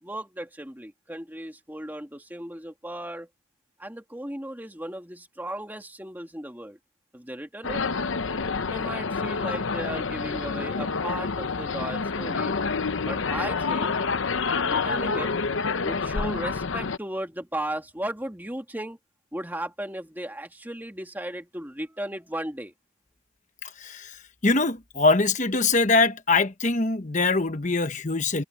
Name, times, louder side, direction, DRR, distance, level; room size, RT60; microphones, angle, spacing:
voice 1, 0.0-3.3 3.8-6.8 7.1-7.8 8.6-12.5 13.0-14.0 14.6-15.3 15.8-19.0 19.3-22.7, right 1 dB, 10° right, 2.2 m, -36 dB
sound 1, 7.6-17.0, left 4 dB, 70° left, 0.8 m, -28 dB
voice 2, 23.6-28.4, left 3 dB, 35° left, 1.2 m, -23 dB
head